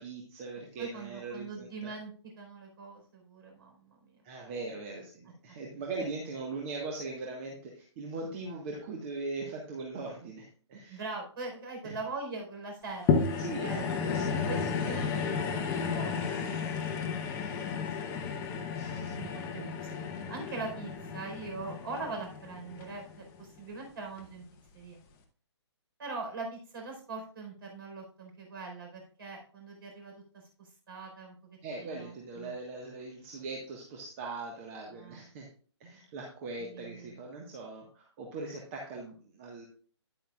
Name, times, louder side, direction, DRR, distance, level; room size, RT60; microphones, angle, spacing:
voice 1, 0.0-1.9 4.2-11.0 11.8-12.0 13.4-14.2 18.7-19.1 31.6-35.5 35.8-39.7, right 3 dB, 30° right, -1 dB, 1.5 m, -40 dB
voice 2, 0.8-4.5 5.5-5.6 10.9-15.6 15.9-24.4 24.7-25.0 26.0-31.3 31.8-32.6 34.9-35.2 36.6-37.2, right 3 dB, 50° right, 2 dB, 4.3 m, -43 dB
sound 1, 13.1-23.6 24.2-24.3, left 5 dB, 15° left, 0.9 m, -33 dB
9.9 x 8.7 x 2.4 m, 0.43 s
figure-of-eight pair, 140°, 15 cm